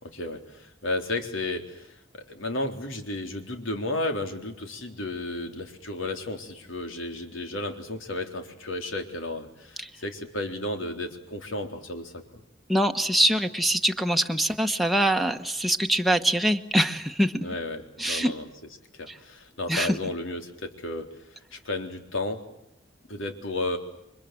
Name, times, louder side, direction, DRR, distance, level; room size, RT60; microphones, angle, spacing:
voice 1, 0.0-12.2 17.4-18.5 19.0-22.4 23.1-23.8, left 2 dB, 85° left, 5 dB, 3.8 m, -33 dB
voice 2, 12.7-17.4 18.0-18.3 19.1-19.2 19.7-20.0, right 1 dB, ahead, 4 dB, 1.2 m, -24 dB
29.5 x 24.5 x 7.8 m, 0.82 s
head